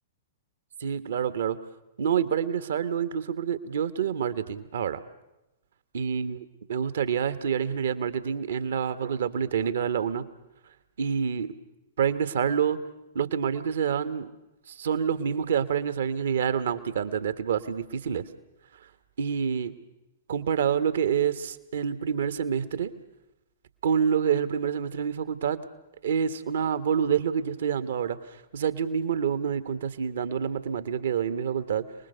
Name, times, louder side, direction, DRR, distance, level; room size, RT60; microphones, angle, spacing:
voice 1, 0.8-1.6 2.0-5.0 5.9-10.2 11.0-11.5 12.0-12.8 13.1-14.3 14.7-18.2 19.2-19.7 20.3-22.9 23.8-25.6 26.0-31.8, right 7 dB, 65° right, 12 dB, 1.5 m, -27 dB
29.0 x 20.5 x 6.9 m, 0.96 s
figure-of-eight pair, 105°, 0 cm